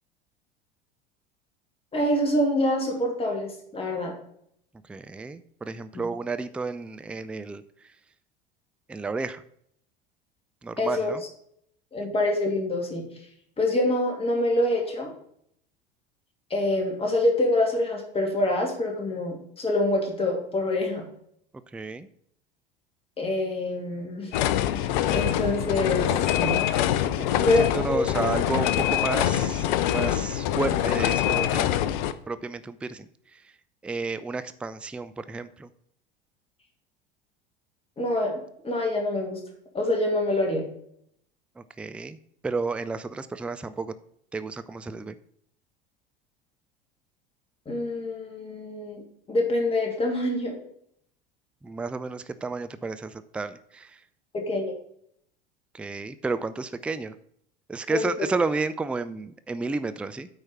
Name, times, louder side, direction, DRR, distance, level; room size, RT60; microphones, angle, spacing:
voice 1, 1.9-4.1 5.9-6.0 10.8-11.1 11.9-13.1 13.6-15.1 16.5-21.0 23.2-24.3 25.1-26.6 27.4-28.0 38.0-39.4 39.7-40.7 47.7-49.0 49.3-50.6 54.3-54.7 57.9-58.1, left 1 dB, 20° left, 0 dB, 2.7 m, -26 dB
voice 2, 4.8-7.6 8.9-9.4 10.6-11.2 21.7-22.1 27.2-31.7 32.3-33.5 33.8-35.7 41.6-42.2 42.4-43.9 44.3-45.2 51.6-54.0 55.7-57.2 57.7-60.3, right 3 dB, 5° right, 12 dB, 0.4 m, -32 dB
sound 1, 24.3-32.1, left 11 dB, 55° left, 0.7 m, -24 dB
8.8 x 4.8 x 5.6 m, 0.69 s
figure-of-eight pair, 75°, 29 cm